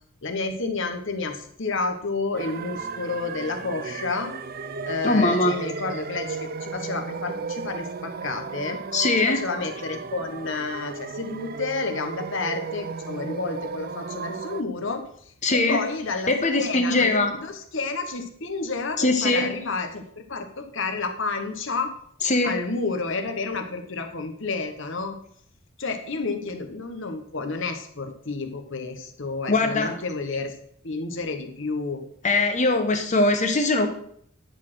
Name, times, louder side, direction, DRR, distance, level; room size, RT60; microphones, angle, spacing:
voice 1, 0.2-4.3 4.9-8.8 9.2-20.0 20.3-21.9 22.4-25.2 25.8-30.5 30.8-32.0, left 3 dB, 55° left, 6 dB, 1.1 m, -30 dB
sound 1, 2.3-14.6, right 5 dB, 40° right, 0.4 m, -35 dB
voice 2, 5.0-5.6 8.9-9.4 15.4-15.8 16.3-17.3 19.0-19.5 22.2-22.6 29.5-29.9 32.2-33.9, left 2 dB, 30° left, 5 dB, 0.9 m, -21 dB
10.5 x 4.3 x 6.1 m, 0.65 s
head